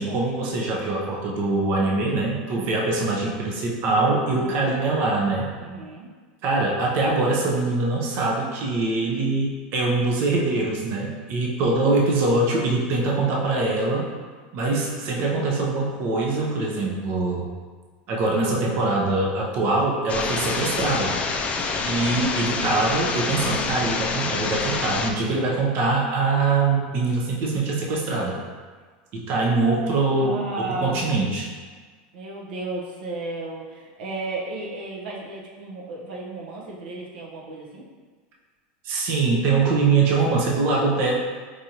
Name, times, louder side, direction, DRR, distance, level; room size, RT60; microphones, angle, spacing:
voice 1, 0.0-5.5 6.4-14.1 14.5-17.5 18.1-21.2 21.9-28.4 29.1-31.5 38.8-41.1, right 3 dB, 50° right, -2 dB, 0.6 m, -23 dB
voice 2, 2.5-2.9 4.3-4.6 5.6-6.1 18.4-18.6 30.2-31.1 32.1-37.8, right 2 dB, 85° right, -3 dB, 0.7 m, -34 dB
sound 1, 20.1-25.1, left 4 dB, 25° left, 0.3 m, -27 dB
4.7 x 2.5 x 2.8 m, 1.5 s
supercardioid pair, 125°, 5 cm